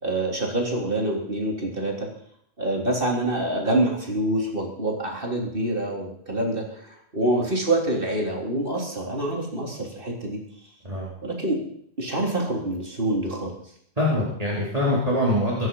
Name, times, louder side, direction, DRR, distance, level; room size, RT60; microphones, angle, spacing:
voice 1, 0.0-2.1 2.6-10.4 11.2-11.6 12.0-13.5, right 1 dB, 55° right, 0 dB, 3.9 m, -26 dB
voice 2, 14.0-15.7, left 1 dB, 35° right, -6 dB, 4.1 m, -23 dB
23.5 x 10.5 x 5.6 m, 0.68 s
omnidirectional pair, 1.1 m